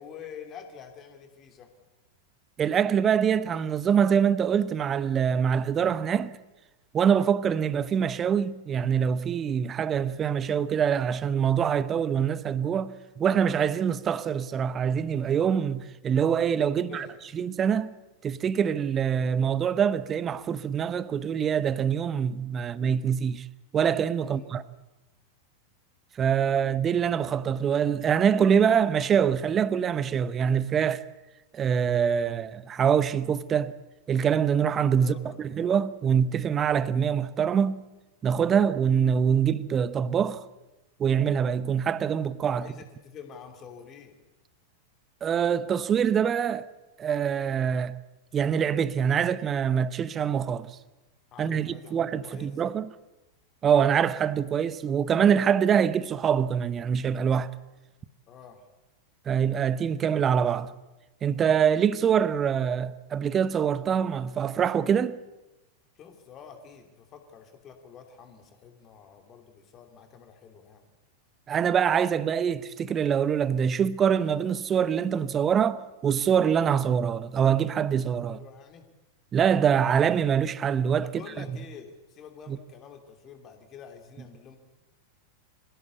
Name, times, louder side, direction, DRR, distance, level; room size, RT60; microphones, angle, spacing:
voice 1, 0.0-1.7 16.8-17.4 24.2-24.5 34.9-35.5 42.5-44.2 51.3-52.5 58.3-58.7 65.9-70.8 78.2-78.8 81.0-84.6, left 7 dB, 30° left, 3.0 m, -47 dB
voice 2, 2.6-6.3 6.9-17.1 17.3-17.9 18.2-23.5 23.7-24.6 26.2-31.0 31.5-33.7 34.1-37.8 38.2-40.4 41.0-42.7 45.2-46.7 47.0-47.9 48.3-50.8 51.4-52.9 53.6-57.5 59.3-60.7 61.2-65.2 71.5-78.4 79.3-81.1 81.4-81.5 82.5-82.6, right 7 dB, 25° right, 0.9 m, -24 dB
25.0 x 16.0 x 8.4 m
figure-of-eight pair, 90°, 0 cm